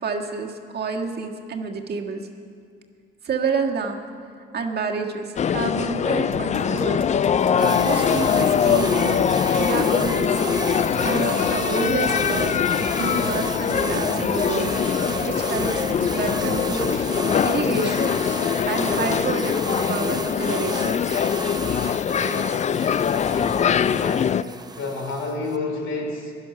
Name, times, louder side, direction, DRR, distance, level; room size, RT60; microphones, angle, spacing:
voice 1, 0.0-2.2 3.2-4.0 4.5-7.0 7.5-9.2 9.5-10.5 11.0-12.6 13.0-14.7 15.2-16.9 17.4-18.1 18.7-21.0, right 5 dB, 55° right, 2 dB, 1.6 m, -28 dB
sound 1, 5.4-24.4, left 8 dB, 35° left, 0.4 m, -22 dB
sound 2, 6.3-17.5 17.8-19.2, right 5 dB, 80° right, 1.1 m, -39 dB
sound 3, 7.6-25.6, right 3 dB, 20° right, 0.6 m, -33 dB
voice 2, 23.2-26.3, left 3 dB, 75° left, 2 dB, 2.9 m, -31 dB
16.0 x 11.0 x 6.0 m, 2.1 s
cardioid pair, 90°, 20 cm